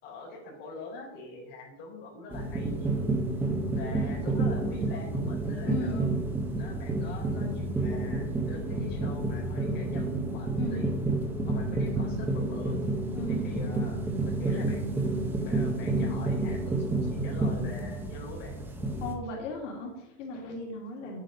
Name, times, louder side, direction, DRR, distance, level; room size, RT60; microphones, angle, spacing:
voice 1, 0.0-3.1 3.8-6.1 6.6-10.9 11.4-12.8 13.4-18.6, left 2 dB, 25° left, -4 dB, 4.5 m, -44 dB
sound 1, 2.3-19.1, right 2 dB, 5° right, 0.6 m, -30 dB
voice 2, 5.6-6.1 10.5-10.9 11.6-11.9 13.1-13.5 19.0-21.2, left 1 dB, 75° left, -1 dB, 2.8 m, -37 dB
9.9 x 9.3 x 5.1 m, 0.95 s
supercardioid pair, 180°, 37 cm